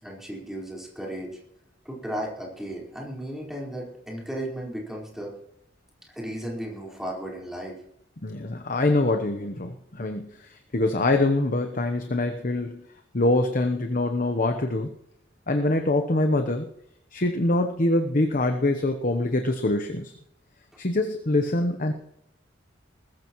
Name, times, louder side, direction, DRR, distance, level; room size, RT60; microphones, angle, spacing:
voice 1, 0.0-1.3 1.8-5.3 6.1-7.7, right 1 dB, ahead, -3 dB, 4.5 m, -35 dB
voice 2, 8.2-12.9 13.1-14.9 15.5-16.7 17.1-20.1 20.8-21.9, left 2 dB, 45° left, 5 dB, 1.0 m, -24 dB
20.5 x 14.0 x 3.1 m, 0.78 s
head